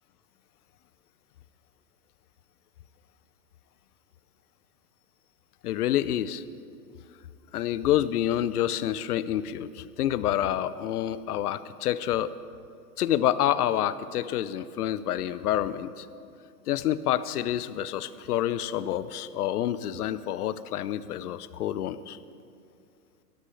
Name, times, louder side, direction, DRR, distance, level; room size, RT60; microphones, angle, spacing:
voice 1, 5.6-6.4 7.5-12.3 13.0-16.1 16.7-22.2, left 11 dB, 70° left, 15 dB, 0.8 m, -28 dB
20.5 x 13.5 x 3.3 m, 2.4 s
hypercardioid pair, 120°, 48 cm